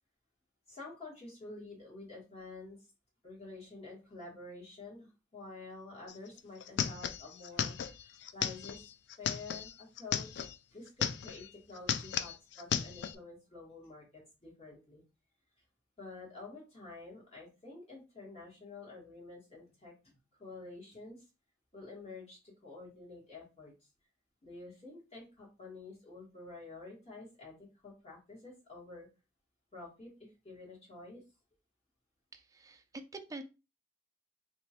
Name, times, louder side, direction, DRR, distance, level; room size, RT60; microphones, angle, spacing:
voice 1, 0.7-2.8 3.2-8.9 9.2-10.4 10.7-15.0 16.0-19.9 20.4-21.2 21.7-23.7 24.4-27.5 27.8-29.1 29.7-31.2, left 3 dB, 35° left, -4 dB, 1.7 m, -49 dB
sound 1, 6.1-6.2 6.4-10.6 10.9-11.5 11.8-13.2, left 8 dB, 65° left, 0.3 m, -35 dB
voice 2, 32.3-33.4, right 2 dB, 20° right, 7 dB, 0.4 m, -46 dB
2.9 x 2.5 x 4.3 m, 0.29 s
head